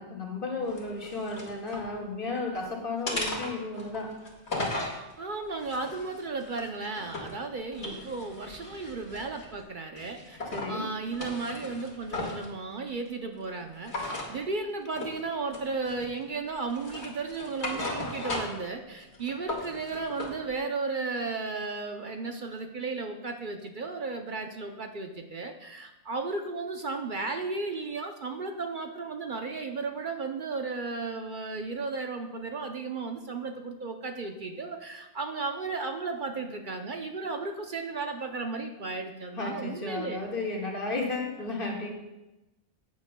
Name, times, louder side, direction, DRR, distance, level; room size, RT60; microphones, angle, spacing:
voice 1, 0.0-4.1 10.5-10.9 39.4-41.9, left 3 dB, 55° left, -2 dB, 2.0 m, -33 dB
sound 1, 0.7-1.9 2.3-2.6 3.1-5.0 5.6-7.4 7.7-9.5 10.0-10.7 11.1-12.5 13.9-14.3 15.0-15.2 15.5-16.2 16.7-18.7 19.0-20.3, left 2 dB, 75° left, 2.2 m, -36 dB
voice 2, 5.2-40.2, right 3 dB, 55° right, 4 dB, 0.8 m, -34 dB
14.5 x 9.5 x 2.2 m, 1.0 s
omnidirectional pair, 1.1 m